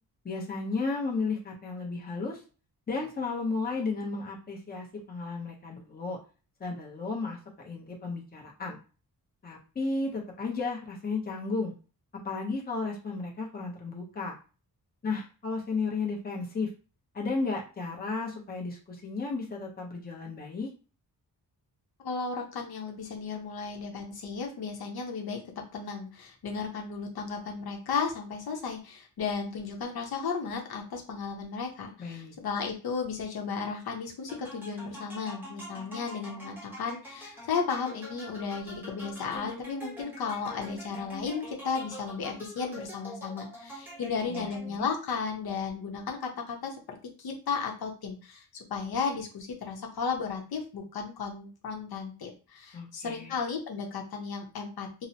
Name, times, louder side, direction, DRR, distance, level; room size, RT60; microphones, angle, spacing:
voice 1, 0.2-2.4 2.9-6.2 6.6-8.8 9.4-11.7 12.1-14.4 15.0-16.7 17.1-20.7 32.0-32.4 44.3-44.8 52.7-53.3, left 3 dB, 25° left, -1 dB, 0.7 m, -33 dB
voice 2, 22.0-46.8 47.2-55.1, left 5 dB, 70° left, 1 dB, 0.7 m, -34 dB
sound 1, 34.3-45.0, equal, 5° right, 0.9 m, -45 dB
2.9 x 2.0 x 2.7 m, 0.35 s
wide cardioid pair, 130°, 38 cm